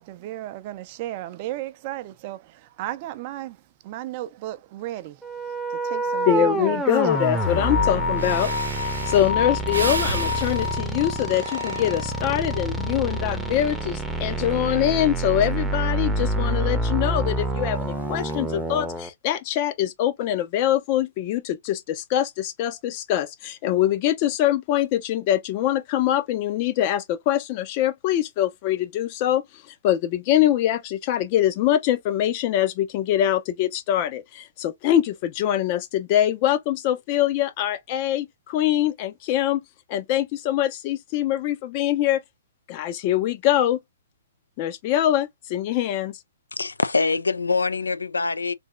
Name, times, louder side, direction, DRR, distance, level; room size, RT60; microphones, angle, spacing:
voice 1, 0.0-5.2 5.7-6.8 7.5-7.6, right 14 dB, 40° right, 0.5 m, -35 dB
sound 1, 5.2-19.1, right 2 dB, 5° right, 0.7 m, -27 dB
voice 2, 6.3-39.6 39.9-42.2 42.7-43.8 44.6-46.2, left 12 dB, 40° left, 0.6 m, -24 dB
sound 2, 7.1-14.8 15.0-15.1 18.3-18.4, left 7 dB, 70° left, 0.7 m, -30 dB
Breathing, 7.8-7.9 8.2-12.4 12.9-13.3, right 4 dB, 80° right, 0.7 m, -33 dB
voice 3, 46.5-48.5, left 4 dB, 85° left, 0.3 m, -24 dB
3.4 x 2.8 x 2.5 m
figure-of-eight pair, 125°, 0 cm